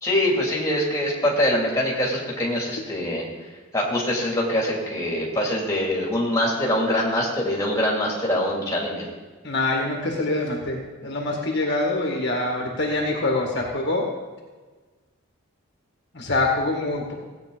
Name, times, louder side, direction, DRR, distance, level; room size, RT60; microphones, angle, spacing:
voice 1, 0.0-3.3 3.7-9.1, left 1 dB, 15° left, -3 dB, 2.7 m, -24 dB
voice 2, 9.4-14.1 16.1-17.1, left 2 dB, 55° left, -1 dB, 1.9 m, -25 dB
16.5 x 8.9 x 4.0 m, 1.3 s
head